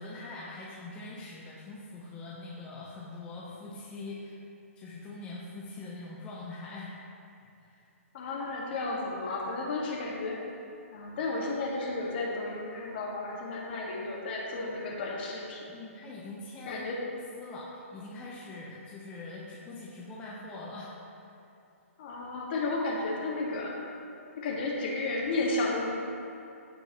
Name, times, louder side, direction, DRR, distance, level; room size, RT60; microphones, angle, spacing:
voice 1, 0.0-4.4 4.8-6.9 7.6-7.9 15.7-16.8 17.1-20.9, left 2 dB, 15° left, -5 dB, 0.8 m, -43 dB
voice 2, 8.1-10.4 10.9-15.6 16.7-17.0 22.0-23.9 24.4-26.0, left 2 dB, 45° left, -2 dB, 1.7 m, -33 dB
15.0 x 5.3 x 3.0 m, 2.7 s
hypercardioid pair, 155°, 8 cm